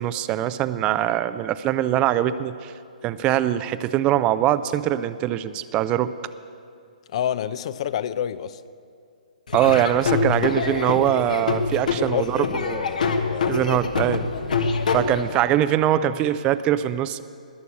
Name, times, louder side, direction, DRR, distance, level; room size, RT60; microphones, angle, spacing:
voice 1, 0.0-2.7 3.0-6.1 9.5-12.9 13.5-14.2 14.9-17.2, right 12 dB, 25° right, 14 dB, 0.4 m, -22 dB
voice 2, 7.1-8.6 11.9-13.9, left 10 dB, 50° left, 15 dB, 0.5 m, -29 dB
Laughter / Drum, 9.5-15.5, left 4 dB, 70° left, 1.3 m, -25 dB
20.5 x 7.0 x 8.2 m, 2.3 s
hypercardioid pair, 135°, 4 cm